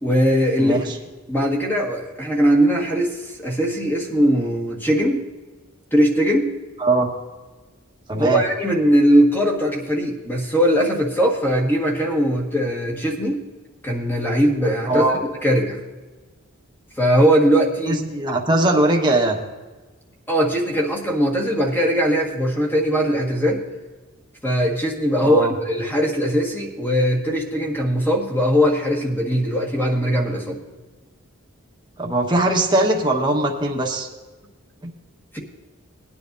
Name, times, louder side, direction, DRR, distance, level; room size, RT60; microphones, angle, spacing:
voice 1, 0.0-0.8 1.3-5.2 5.9-6.5 8.2-13.4 13.8-15.0 15.4-15.8 17.0-18.0 20.3-23.6 24.4-30.6 35.3-35.4, equal, 10° left, 0 dB, 1.6 m, -20 dB
voice 2, 0.6-1.0 6.8-7.1 8.1-8.4 14.9-15.2 17.9-19.4 25.2-25.5 32.0-34.1 34.8-34.9, right 2 dB, 20° right, 0 dB, 1.4 m, -20 dB
19.0 x 10.0 x 2.7 m, 1.3 s
head